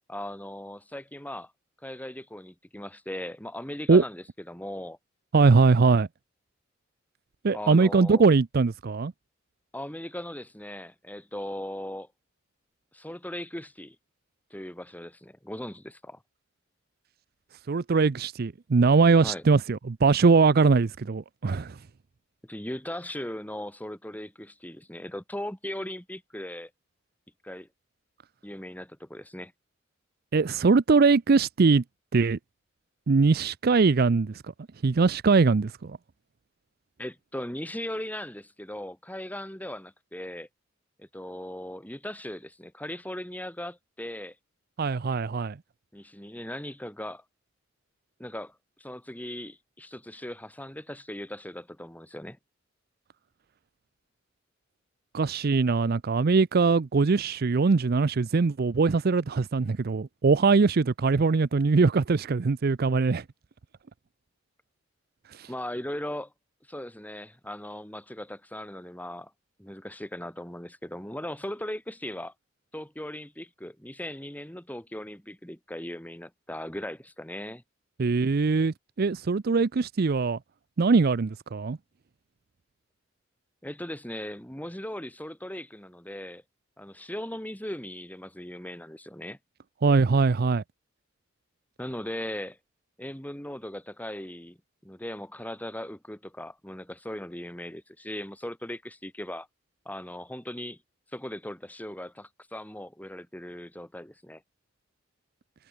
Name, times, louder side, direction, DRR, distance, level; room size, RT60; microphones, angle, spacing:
voice 1, 0.1-1.5 1.8-5.0 7.5-8.2 9.7-12.1 12.9-14.0 14.5-16.2 19.2-19.4 22.4-26.7 27.4-27.7 28.4-29.5 37.0-40.5 41.0-44.3 45.9-47.2 48.2-52.4 65.5-66.3 66.7-69.3 69.6-72.3 72.7-77.6 83.6-86.4 86.8-89.4 91.8-92.6 93.0-94.6 94.8-99.5 99.9-100.8 101.1-104.4, left 1 dB, 10° left, 4.2 m, -38 dB
voice 2, 5.3-6.1 7.4-9.1 17.7-21.8 30.3-31.8 32.1-32.4 33.1-34.4 34.8-36.0 44.8-45.6 55.1-63.2 65.3-65.5 78.0-80.4 80.8-81.8 89.8-90.6, right 4 dB, 50° right, 0.5 m, -22 dB
head